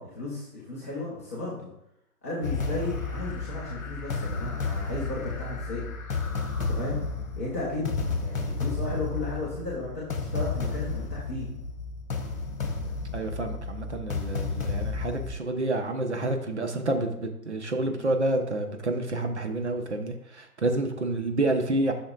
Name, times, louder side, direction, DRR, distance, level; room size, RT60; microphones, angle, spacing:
voice 1, 0.0-1.7 2.2-5.9 6.7-7.0 7.3-7.9 8.2-11.5, left 2 dB, 10° left, -8 dB, 0.9 m, -34 dB
sound 1, 2.4-15.3, left 4 dB, 55° left, 1.3 m, -32 dB
voice 2, 13.1-21.9, right 2 dB, 45° right, 4 dB, 1.0 m, -29 dB
11.5 x 6.3 x 2.5 m, 0.82 s
figure-of-eight pair, 145°, 47 cm